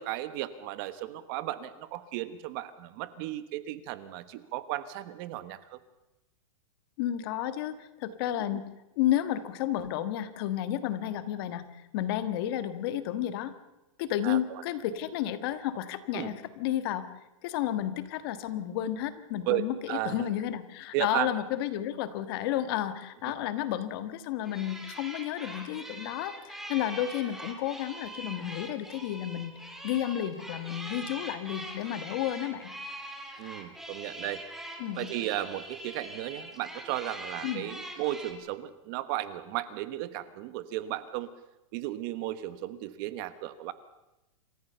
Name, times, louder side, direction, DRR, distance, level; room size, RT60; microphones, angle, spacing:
voice 1, 0.0-5.8 8.5-8.6 14.2-14.6 16.1-16.3 19.5-20.3 20.9-21.3 33.4-34.4 35.0-41.3 41.7-43.7, right 14 dB, 40° right, 13 dB, 1.2 m, -35 dB
voice 2, 7.0-8.6 9.0-13.5 14.0-17.1 17.4-29.5 29.8-32.7 34.8-35.1 37.4-37.7, left 12 dB, 45° left, 11 dB, 1.5 m, -32 dB
sound 1, 24.4-38.3, right 1 dB, ahead, 2.2 m, -43 dB
28.0 x 14.5 x 6.9 m, 0.96 s
hypercardioid pair, 155°, 17 cm